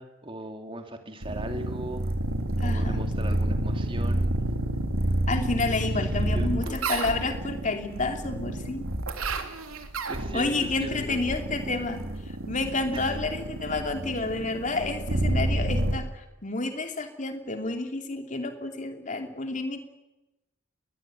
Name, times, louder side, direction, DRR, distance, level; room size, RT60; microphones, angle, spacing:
voice 1, 0.0-2.1 2.6-4.3 5.9-6.9 10.1-11.2 12.9-13.1, right 1 dB, 25° right, 5 dB, 2.8 m, -38 dB
sound 1, 1.2-15.9, right 1 dB, 85° right, 3.0 m, -29 dB
voice 2, 2.6-3.0 5.3-8.9 10.3-12.0 12.5-19.8, left 3 dB, 35° left, 5 dB, 2.8 m, -30 dB
21.0 x 21.0 x 9.2 m, 0.99 s
head